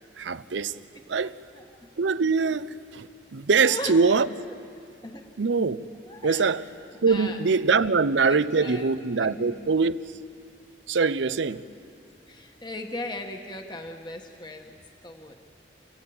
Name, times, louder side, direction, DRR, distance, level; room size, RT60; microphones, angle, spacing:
voice 1, 0.2-0.8 1.1-1.4 2.0-4.3 5.4-5.8 6.2-6.6 7.0-10.0 10.9-11.6, right 4 dB, 85° right, 0.7 m, -23 dB
voice 2, 3.5-4.0 4.7-5.2 6.1-6.5 7.1-7.4 7.8-7.9 8.3-9.7 12.3-14.8 15.0-15.3, left 2 dB, 25° left, 1.3 m, -38 dB
29.0 x 16.0 x 8.8 m
head